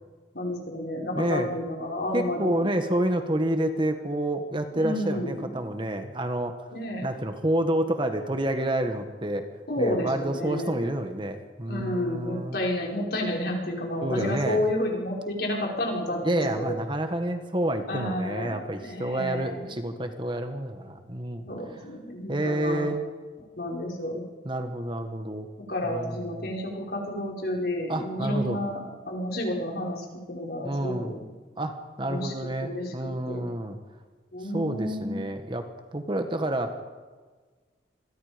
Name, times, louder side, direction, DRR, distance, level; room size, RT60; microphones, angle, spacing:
voice 1, 0.3-2.7 4.7-5.5 6.7-7.1 9.7-10.8 11.7-16.7 17.9-19.7 21.4-22.9 23.6-24.2 25.7-31.3 32.1-32.3 32.6-32.9 33.3-33.5 34.3-35.2, left 1 dB, 60° left, -1 dB, 5.3 m, -31 dB
voice 2, 1.1-1.5 2.1-6.5 7.0-9.5 9.8-12.6 14.0-14.7 16.2-21.4 22.3-23.0 24.5-25.5 25.8-26.5 27.9-28.6 30.6-31.1 31.6-33.8 34.5-35.6 35.9-36.8, right 1 dB, 30° right, 6 dB, 1.7 m, -29 dB
27.5 x 22.0 x 5.3 m, 1.4 s
head